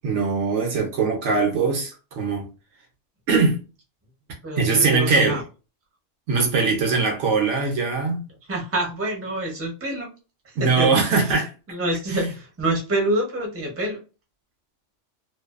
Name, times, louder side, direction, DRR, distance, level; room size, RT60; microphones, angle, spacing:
voice 1, 0.0-2.5 3.3-3.6 4.6-5.4 6.3-8.3 10.6-11.5 12.1-12.3, right 4 dB, 70° right, 1.0 m, -21 dB
voice 2, 4.4-5.4 8.5-10.1 10.4-10.9 11.7-14.0, right 1 dB, 15° right, 0.6 m, -26 dB
2.5 x 2.3 x 2.4 m
omnidirectional pair, 1.3 m